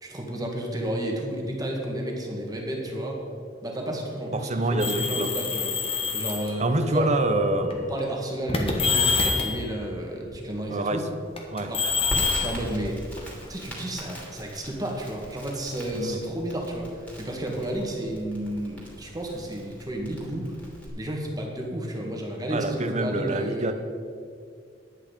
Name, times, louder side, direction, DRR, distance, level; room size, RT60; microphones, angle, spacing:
voice 1, 0.0-3.2 3.6-5.7 6.1-6.7 6.9-7.1 7.7-11.0 11.7-11.8 12.4-13.0 13.5-20.5 21.0-23.7, right 1 dB, 20° right, 0 dB, 1.8 m, -32 dB
voice 2, 4.3-5.3 6.6-7.8 10.7-11.1 11.5-11.7 15.9-16.2 22.5-23.7, right 2 dB, 40° right, 8 dB, 0.8 m, -26 dB
sound 1, 4.8-6.5 7.4-7.7 8.5-9.6 11.4-13.5, left 4 dB, 30° left, 1.4 m, -26 dB
Crackle, 12.1-20.9, equal, 5° left, 2.9 m, -40 dB
10.5 x 8.9 x 5.1 m, 2.2 s
head